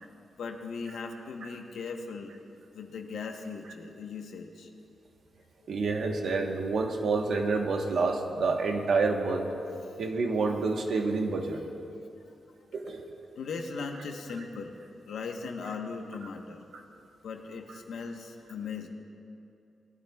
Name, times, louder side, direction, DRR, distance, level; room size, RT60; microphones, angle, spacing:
voice 1, 0.4-2.3 2.7-4.7 9.9-10.0 11.5-11.6 12.3-12.4 13.3-14.8 15.1-16.6 17.2-18.9, left 4 dB, 75° left, 3 dB, 1.1 m, -38 dB
voice 2, 5.7-9.5 10.0-11.6 12.7-13.0, right 3 dB, 65° right, 2 dB, 1.2 m, -28 dB
20.5 x 12.0 x 2.4 m, 2.7 s
wide cardioid pair, 150°, 0 cm